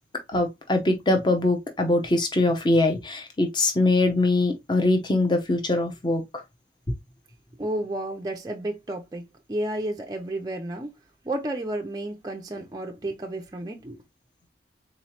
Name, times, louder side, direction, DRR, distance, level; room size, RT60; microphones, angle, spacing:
voice 1, 0.3-6.2, left 2 dB, 25° left, 0.7 m, -22 dB
voice 2, 7.6-10.9 11.2-14.0, right 1 dB, 20° right, 0.4 m, -32 dB
3.8 x 3.0 x 2.8 m
head